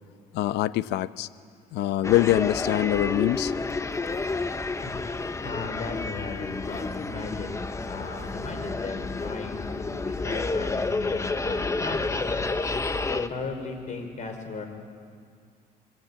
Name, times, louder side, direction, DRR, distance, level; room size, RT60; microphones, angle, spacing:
voice 1, 0.3-1.3 1.7-3.5, left 14 dB, 85° left, 15 dB, 0.8 m, -24 dB
sound 1, 2.0-13.3, left 3 dB, 15° left, 1.0 m, -30 dB
voice 2, 5.4-7.6 7.9-12.5 13.1-14.7, left 4 dB, 45° left, 5 dB, 5.1 m, -36 dB
27.0 x 23.0 x 8.9 m, 2.1 s
cardioid pair, 110°, 17 cm